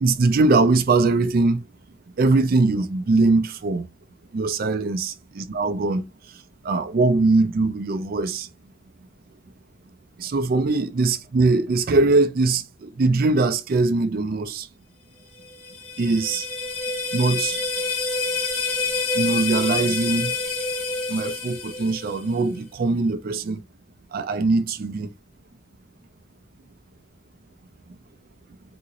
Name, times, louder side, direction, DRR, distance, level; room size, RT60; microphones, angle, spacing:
voice 1, 0.0-1.7 2.2-3.9 4.3-8.5 10.2-14.7 16.0-16.5 17.1-17.6 19.1-20.3 21.1-23.6 24.1-25.1, right 3 dB, 45° right, 0.3 m, -21 dB
sound 1, 15.4-22.4, left 4 dB, 90° left, 1.6 m, -27 dB
3.7 x 2.6 x 2.9 m
head